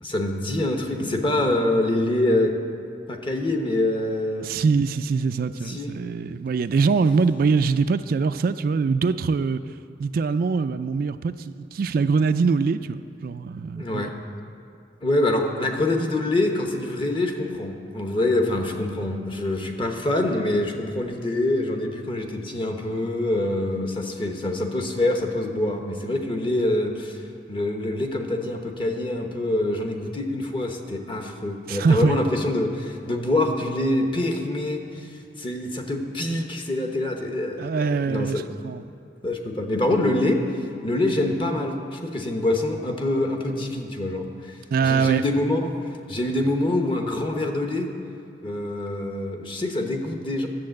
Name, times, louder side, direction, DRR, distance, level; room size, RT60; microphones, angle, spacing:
voice 1, 0.0-2.5 3.1-4.5 5.6-5.9 13.8-14.1 15.0-27.2 27.5-35.1 35.4-38.4 39.2-44.6 44.8-45.7 46.1-47.9 48.4-50.5, left 1 dB, 30° left, 4 dB, 1.0 m, -25 dB
voice 2, 4.4-9.6 10.0-14.1 31.7-32.2 37.6-38.8 44.7-45.2, right 4 dB, 55° right, 11 dB, 0.3 m, -23 dB
10.5 x 7.3 x 7.6 m, 2.5 s
head